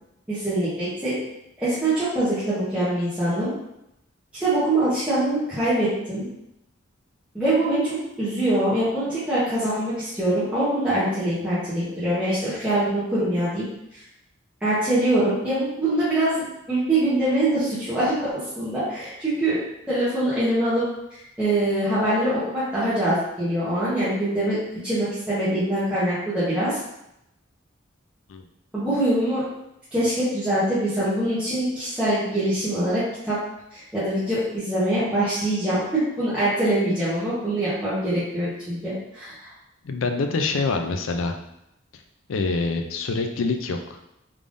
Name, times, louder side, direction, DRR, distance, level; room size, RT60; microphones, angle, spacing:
voice 1, 0.3-1.1 1.6-3.5 4.4-6.3 7.3-13.6 14.6-19.6 19.9-24.6 24.8-26.8 28.7-29.4 29.9-33.4 33.7-39.5, right 1 dB, 5° right, -13 dB, 1.0 m, -24 dB
voice 2, 39.8-41.3 42.3-44.0, left 3 dB, 80° left, 6 dB, 0.4 m, -25 dB
3.5 x 3.5 x 2.5 m, 0.83 s
head